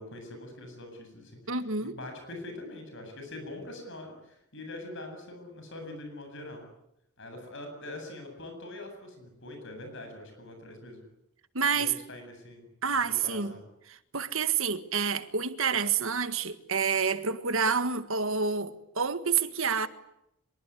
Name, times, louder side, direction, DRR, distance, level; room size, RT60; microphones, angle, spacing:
voice 1, 0.0-6.6 7.2-11.0 11.6-12.7 13.0-13.6, left 2 dB, 55° left, 8.0 m, -43 dB
voice 2, 1.5-2.0 11.5-11.9 12.8-13.5 13.9-19.9, right 6 dB, 65° right, 1.7 m, -28 dB
25.0 x 23.5 x 9.9 m
head